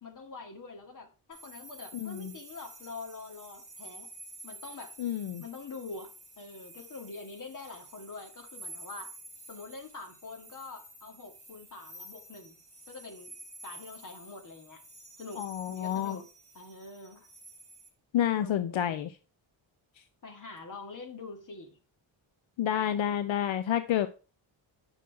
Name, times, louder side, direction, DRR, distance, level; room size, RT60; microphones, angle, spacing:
voice 1, 0.0-4.1 4.4-5.0 5.4-9.1 9.5-12.6 12.9-13.4 13.6-14.8 15.2-16.3 16.5-17.3 18.4-19.0 20.2-21.8 22.7-23.0, left 3 dB, 40° left, 4 dB, 1.9 m, -45 dB
sound 1, 1.3-17.9, right 2 dB, 15° right, 3.4 m, -50 dB
voice 2, 1.9-2.3 5.0-5.4 15.4-16.2 18.1-19.1 22.6-24.1, left 10 dB, 75° left, 11 dB, 0.7 m, -29 dB
8.9 x 6.2 x 4.6 m, 0.34 s
wide cardioid pair, 170°, 47 cm